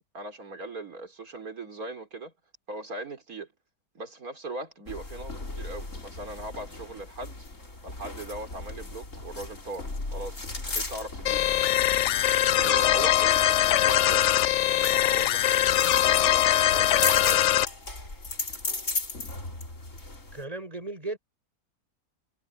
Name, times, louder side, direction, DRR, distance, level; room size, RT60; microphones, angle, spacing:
voice 1, 0.0-2.3 2.7-3.5 3.9-7.4 7.8-11.5 12.5-17.6, right 2 dB, 55° right, 4.3 m, -39 dB
sound 1, 4.9-20.4, left 3 dB, 45° left, 4.3 m, -37 dB
sound 2, 11.2-17.6, left 13 dB, 80° left, 0.6 m, -22 dB
voice 2, 20.3-21.2, right 2 dB, 20° right, 6.6 m, -35 dB
omnidirectional pair, 1.8 m